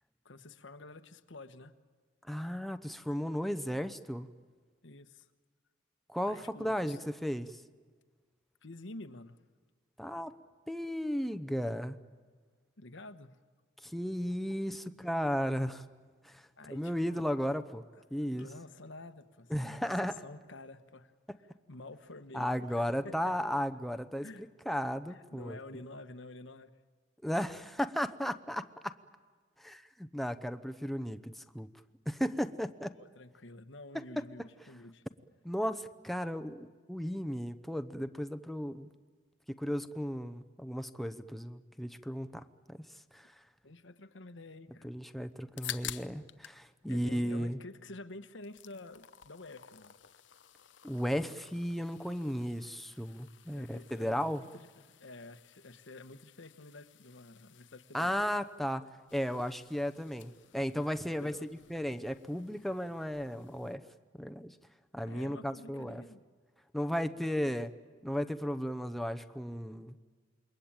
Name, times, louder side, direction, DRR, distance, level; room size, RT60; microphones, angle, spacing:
voice 1, 0.2-1.7 4.8-5.3 6.3-7.0 8.6-9.4 12.8-13.4 16.6-17.2 17.9-18.0 18.3-21.1 21.7-23.4 24.2-24.5 25.1-26.7 32.9-35.0 43.6-44.9 46.9-50.0 51.8-51.9 53.5-58.4 61.2-61.5 65.0-66.2 67.1-67.5, left 2 dB, 90° left, 9 dB, 1.3 m, -49 dB
voice 2, 2.3-4.3 6.1-7.6 10.0-10.3 10.7-12.0 13.8-15.8 16.2-17.8 18.1-18.5 19.5-20.2 22.3-24.3 24.7-25.6 27.2-29.0 29.6-31.7 32.1-33.0 33.9-34.0 35.4-38.9 39.5-42.9 43.1-43.3 44.8-47.6 50.8-54.4 57.9-63.8 64.2-64.6 64.9-66.0 66.7-67.7 68.0-70.0, equal, ahead, 9 dB, 0.8 m, -35 dB
sound 1, 45.3-46.6 46.9-47.9 48.2-63.7, left 11 dB, 70° left, 0.8 m, -51 dB
28.0 x 22.5 x 8.9 m, 1.5 s
head